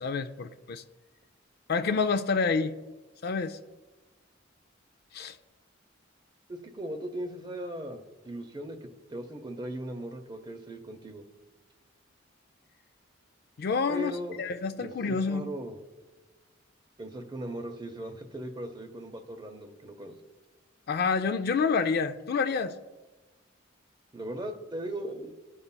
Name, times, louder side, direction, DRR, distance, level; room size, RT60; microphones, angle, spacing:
voice 1, 0.0-0.8 1.7-2.7 3.2-3.6 5.1-5.4 13.6-14.1 14.4-15.5 20.9-22.7, left 5 dB, 50° left, 8 dB, 0.4 m, -28 dB
voice 2, 6.5-11.2 13.9-14.4 14.8-15.8 17.0-20.3 24.1-25.3, right 1 dB, 20° right, 5 dB, 0.6 m, -38 dB
15.0 x 5.5 x 2.2 m, 1.2 s
head